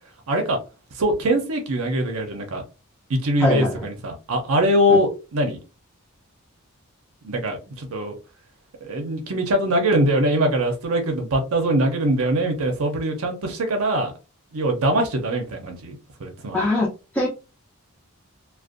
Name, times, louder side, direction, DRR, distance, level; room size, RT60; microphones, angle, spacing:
voice 1, 0.3-0.6 1.0-2.6 3.1-5.6 7.2-8.2 8.8-14.1 14.5-16.7, right 1 dB, 70° right, 3 dB, 0.6 m, -22 dB
voice 2, 3.4-3.7 4.9-5.0 16.5-16.9 17.1-17.3, left 1 dB, 5° left, -4 dB, 0.5 m, -21 dB
2.5 x 2.2 x 2.4 m, 0.30 s
head